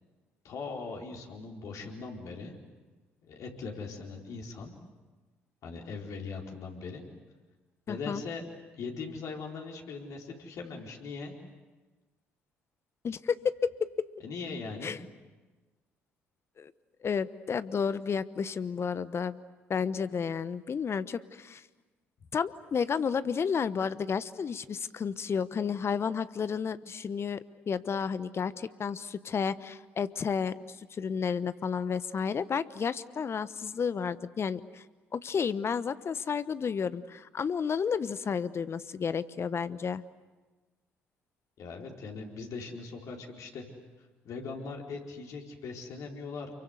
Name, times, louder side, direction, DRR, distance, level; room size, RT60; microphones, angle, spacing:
voice 1, 0.4-2.6 3.2-4.7 5.6-7.0 7.9-8.4 8.8-11.4 14.2-14.9 41.6-43.6 44.2-46.5, left 4 dB, 60° left, 0 dB, 4.5 m, -40 dB
voice 2, 7.9-8.2 13.0-14.1 14.8-15.0 16.6-16.7 17.0-19.4 19.7-21.6 22.3-30.5 30.9-34.8 35.1-40.0, left 6 dB, 40° left, 15 dB, 1.1 m, -31 dB
29.0 x 23.5 x 8.1 m, 1.3 s
hypercardioid pair, 50°, 6 cm